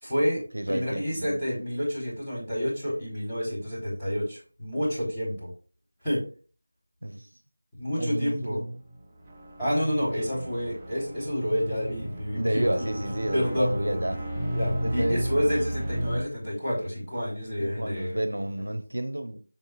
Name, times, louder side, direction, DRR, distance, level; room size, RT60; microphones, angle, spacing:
voice 1, 0.0-0.4 0.7-5.5 6.0-6.2 7.8-8.6 9.6-12.9 13.3-14.0 14.5-18.2, equal, 5° left, 3.7 m, -29 dB
voice 2, 0.5-1.4 7.0-7.3 8.0-8.8 12.3-14.2 14.8-15.2 15.5-15.6 17.6-19.4, right 1 dB, 85° right, 0.9 m, -30 dB
sound 1, 8.8-16.2, right 1 dB, 15° right, 0.9 m, -33 dB
7.6 x 5.6 x 2.5 m
figure-of-eight pair, 170°, 0 cm